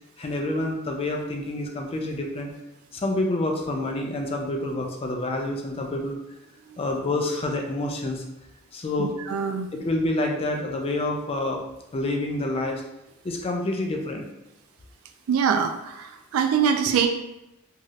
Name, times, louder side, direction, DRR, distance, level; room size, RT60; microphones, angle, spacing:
voice 1, 0.2-2.5 2.9-6.2 6.8-8.2 8.7-9.2 9.7-11.6 11.9-12.8 13.2-14.3, left 2 dB, 25° left, 2 dB, 0.4 m, -28 dB
voice 2, 9.0-9.7 15.3-17.1, right 7 dB, 75° right, 6 dB, 0.3 m, -24 dB
2.7 x 2.4 x 3.0 m, 0.92 s
head